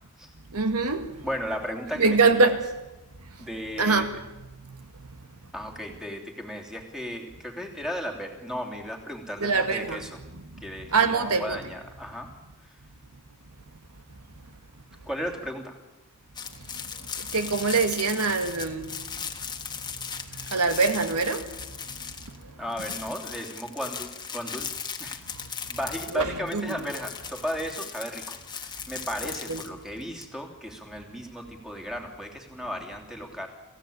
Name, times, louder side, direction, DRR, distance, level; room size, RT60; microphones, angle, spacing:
voice 1, 0.5-1.1 2.0-2.6 3.8-4.2 4.7-4.8 9.4-10.0 10.9-11.6 17.2-18.9 20.1-21.5 22.3-22.4 26.1-26.8 29.5-29.6, right 4 dB, 85° right, 2.1 m, -24 dB
voice 2, 1.2-2.6 3.4-4.2 5.5-10.2 10.6-12.3 15.1-15.7 22.6-24.7 25.0-25.2 25.7-33.5, equal, ahead, 3.0 m, -35 dB
sound 1, 16.3-22.4 22.7-30.2, left 6 dB, 20° left, 1.5 m, -38 dB
27.0 x 16.0 x 8.8 m
head